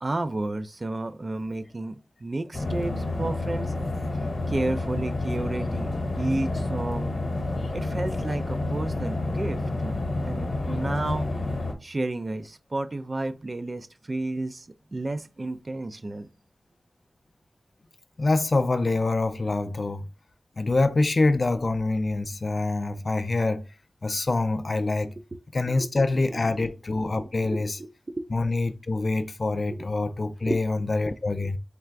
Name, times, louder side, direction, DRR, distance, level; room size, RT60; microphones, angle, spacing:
voice 1, 0.0-3.7 4.5-7.1 7.7-11.3 11.8-16.3 25.7-25.9 26.3-26.6 27.1-28.2 30.4-30.6, right 2 dB, 35° right, 0.3 m, -32 dB
sound 1, 2.5-11.7, left 2 dB, 60° left, 0.9 m, -29 dB
voice 2, 18.2-20.0 20.6-23.6 24.0-25.1 25.5-27.8 28.3-31.6, left 2 dB, 45° left, 0.3 m, -25 dB
3.3 x 2.4 x 4.5 m
wide cardioid pair, 110°, 0 cm